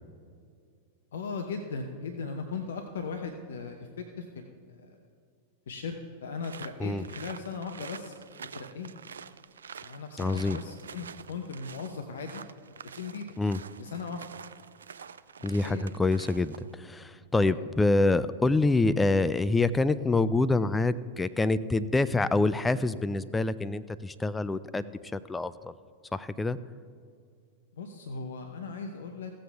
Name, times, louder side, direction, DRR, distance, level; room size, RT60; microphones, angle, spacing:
voice 1, 1.1-4.4 4.8-5.0 5.7-8.1 8.5-8.9 9.8-12.4 12.9-13.3 13.8-14.2 15.6-15.8 17.4-17.6 27.7-29.3, left 5 dB, 70° left, 5 dB, 0.8 m, -38 dB
sound 1, 6.4-16.7, right 6 dB, 75° right, 0.3 m, -46 dB
voice 2, 10.2-10.6 13.4-13.6 15.4-24.8 25.1-25.7 26.1-26.6, left 2 dB, 10° left, 14 dB, 0.4 m, -26 dB
16.0 x 7.6 x 3.4 m, 2.2 s
figure-of-eight pair, 95°, 0 cm